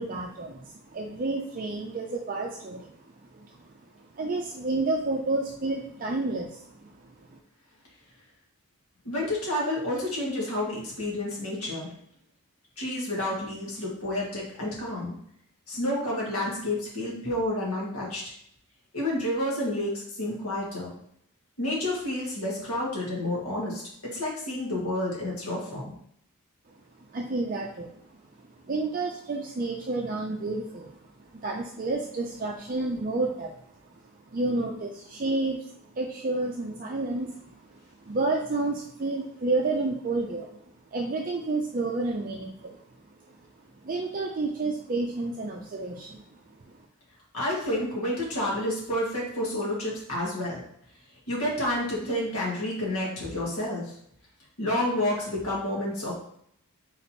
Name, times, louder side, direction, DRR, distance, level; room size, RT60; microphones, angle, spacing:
voice 1, 0.0-3.0 3.3-3.7 4.0-7.4 26.7-33.5 33.9-40.6 40.9-42.8 43.1-43.5 43.8-46.8, right 2 dB, 40° right, 0 dB, 0.4 m, -31 dB
voice 2, 9.0-11.9 12.8-15.1 15.7-18.3 18.9-20.9 21.6-25.9 47.3-50.6 51.3-53.9 54.6-56.1, left 1 dB, 80° left, -4 dB, 1.9 m, -30 dB
3.9 x 2.9 x 4.3 m, 0.70 s
head